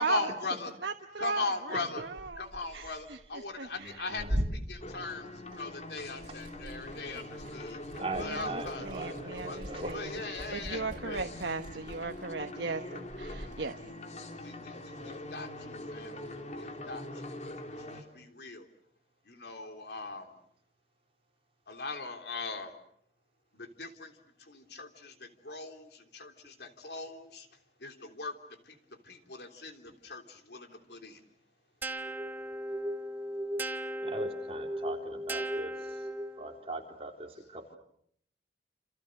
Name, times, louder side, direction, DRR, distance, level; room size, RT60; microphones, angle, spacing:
voice 1, 0.0-0.7 1.2-2.0 2.4-7.8 8.2-8.9 9.5-9.6 9.9-11.3 14.3-18.7 19.3-20.3 21.7-22.7 23.5-24.1 24.4-27.5 27.8-28.3 28.6-28.8 29.0-31.2, left 3 dB, 65° left, 6 dB, 3.3 m, -39 dB
voice 2, 0.8-1.4 1.7-2.4 2.7-3.9 8.2-8.4 8.8-10.0 10.5-13.8, right 4 dB, 80° right, 6 dB, 1.1 m, -37 dB
Liquid, 2.0-5.7 6.0-13.6, equal, 50° right, 6.2 m, -41 dB
sound 1, 4.8-18.0, left 1 dB, 40° left, 3.2 m, -43 dB
voice 3, 8.0-10.2 34.0-36.1 36.4-37.8, right 2 dB, 35° right, 2 dB, 4.0 m, -40 dB
sound 2, 31.8-36.6, right 1 dB, 10° right, 1.1 m, -36 dB
29.5 x 28.5 x 6.6 m, 0.68 s
head